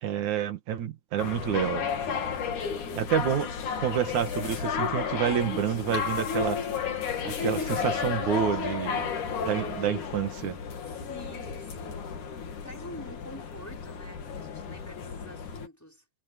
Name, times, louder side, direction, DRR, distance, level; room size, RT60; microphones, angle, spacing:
voice 1, 0.0-1.9 2.9-3.5 3.8-6.6 7.2-9.1 9.5-10.6, right 9 dB, 60° right, 2.9 m, -28 dB
sound 1, 1.2-15.7, left 6 dB, 60° left, 3.8 m, -33 dB
voice 2, 2.4-3.2 11.1-12.2 12.6-16.0, equal, 5° left, 5.0 m, -47 dB
omnidirectional pair, 4.1 m